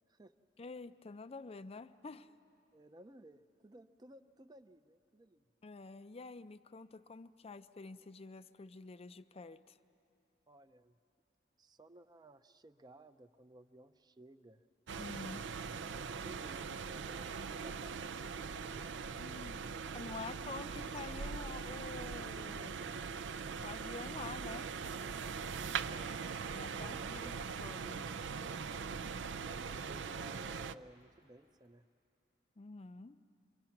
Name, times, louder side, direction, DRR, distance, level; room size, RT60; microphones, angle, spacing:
voice 1, 0.6-2.3 5.6-9.8 15.0-15.5 19.2-19.6 19.9-22.8 23.6-24.7 26.5-28.1 32.6-33.2, left 3 dB, 35° left, 13 dB, 0.5 m, -48 dB
voice 2, 2.7-5.4 10.5-11.0 11.6-14.6 15.9-19.1 19.9-20.4 25.9-26.2 26.7-27.6 29.4-31.8, right 1 dB, 20° right, 9 dB, 0.5 m, -57 dB
sound 1, 14.9-30.7, right 5 dB, 75° right, 0.4 m, -41 dB
sound 2, 25.0-30.7, left 3 dB, 75° left, 0.9 m, -64 dB
28.5 x 23.5 x 5.9 m, 2.7 s
head